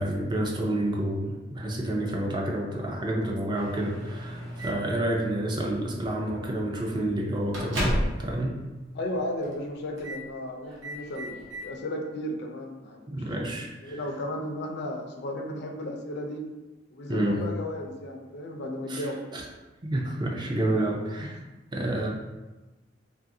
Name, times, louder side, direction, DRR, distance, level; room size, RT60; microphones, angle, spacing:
voice 1, 0.0-8.5 13.1-13.9 17.1-17.4 18.9-19.0 19.3-19.4 19.8-21.4 21.7-22.1, right 1 dB, 25° right, 0 dB, 0.4 m, -29 dB
Microwave oven, 3.5-4.9 5.9-6.1 6.5-6.6 7.0-8.3 8.6-8.7 9.4-9.7 10.0-10.2 10.6-11.7, equal, 75° right, 0.8 m, -33 dB
voice 2, 8.9-13.5 13.8-16.5 16.9-19.2 21.2-21.3, left 1 dB, 60° left, 3 dB, 0.4 m, -34 dB
2.8 x 2.5 x 2.6 m, 1.1 s
head